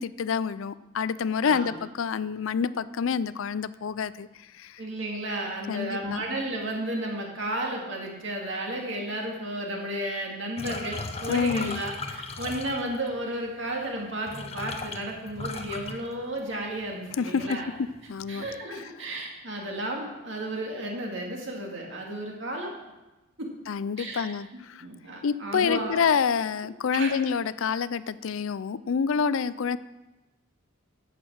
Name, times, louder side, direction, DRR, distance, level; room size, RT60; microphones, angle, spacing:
voice 1, 0.0-4.3 4.6-4.8 5.7-6.2 11.3-11.8 17.2-17.6 18.1-18.5 23.7-24.8 25.2-29.8, left 6 dB, 75° left, 17 dB, 0.4 m, -27 dB
voice 2, 1.4-1.8 4.8-17.7 18.3-22.7 23.4-23.5 24.0-24.3 24.8-26.1 26.9-27.1, right 1 dB, 60° right, 0 dB, 2.4 m, -33 dB
sound 1, 10.6-13.1 13.9-14.0 14.3-16.7 17.0-17.5 17.8-18.5, left 3 dB, 30° left, 0.7 m, -37 dB
10.5 x 8.3 x 6.3 m, 1.1 s
head